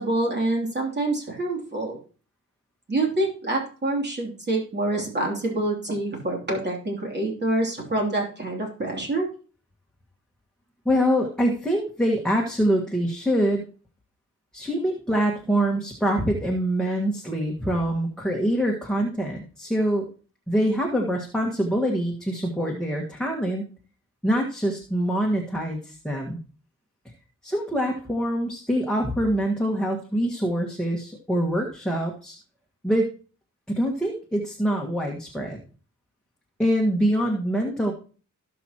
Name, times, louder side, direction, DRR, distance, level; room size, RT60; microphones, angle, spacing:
voice 1, 0.0-2.0 2.9-9.3, right 2 dB, 30° right, -1 dB, 3.0 m, -26 dB
voice 2, 10.8-13.7 14.5-20.1 20.5-23.7 24.2-26.4 27.4-32.4 32.8-33.1 33.7-35.6 36.6-37.9, equal, ahead, -1 dB, 1.6 m, -24 dB
17.5 x 6.2 x 3.0 m, 0.39 s
wide cardioid pair, 110°, 32 cm